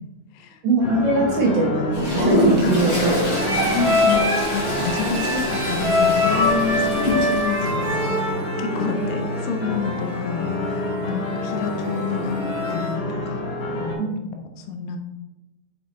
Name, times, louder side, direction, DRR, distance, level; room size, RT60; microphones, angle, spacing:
voice 1, 0.6-3.1 3.5-3.8 9.0-9.1 11.2-11.3 14.0-14.2, right 2 dB, 75° right, 0 dB, 2.4 m, -22 dB
sound 1, 0.8-14.0, left 2 dB, 65° left, 2.5 m, -28 dB
Toilet flush, 1.9-7.7, equal, 35° left, 1.2 m, -25 dB
sound 2, 3.4-13.0, left 2 dB, 50° right, 2.2 m, -25 dB
voice 2, 3.7-4.3 4.5-8.1 8.6-12.4 12.7-13.4 13.8-14.0 14.6-15.0, left 5 dB, 80° left, 4 dB, 2.7 m, -28 dB
6.1 x 5.3 x 3.0 m, 1.0 s
omnidirectional pair, 4.9 m